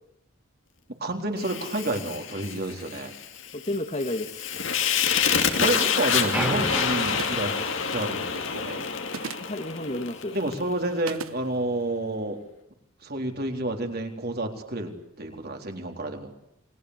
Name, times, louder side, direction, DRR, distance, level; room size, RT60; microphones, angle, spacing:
voice 1, 1.0-3.2 5.6-8.9 10.3-12.4 13.0-14.9 15.2-16.3, right 1 dB, 45° right, 4 dB, 4.0 m, -30 dB
Fire, 1.4-10.6, left 7 dB, 60° left, 2.8 m, -28 dB
voice 2, 3.5-4.6 5.5-6.0 9.4-10.3, left 1 dB, 35° left, 7 dB, 1.9 m, -32 dB
sound 1, 6.3-8.6, right 1 dB, 5° right, 2.1 m, -33 dB
sound 2, 7.0-7.5 9.1-9.5 11.1-11.4, right 5 dB, 75° right, 1.2 m, -36 dB
29.0 x 22.0 x 8.2 m, 0.80 s
head